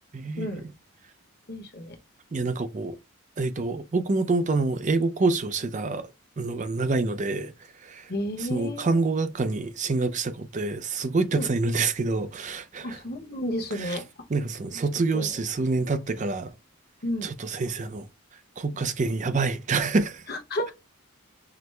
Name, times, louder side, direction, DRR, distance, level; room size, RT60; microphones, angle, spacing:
voice 1, 0.1-0.7 2.3-3.0 3.4-6.1 6.4-7.5 7.8-8.1 8.4-13.0 13.7-14.0 14.3-16.5 17.2-18.1 18.6-20.2, right 3 dB, 35° right, 0.4 m, -27 dB
voice 2, 1.5-2.0 8.1-9.0 11.3-11.5 12.8-14.0 15.1-15.3 17.0-17.3 20.3-20.7, left 1 dB, 45° left, 1.0 m, -32 dB
5.8 x 2.1 x 3.2 m
head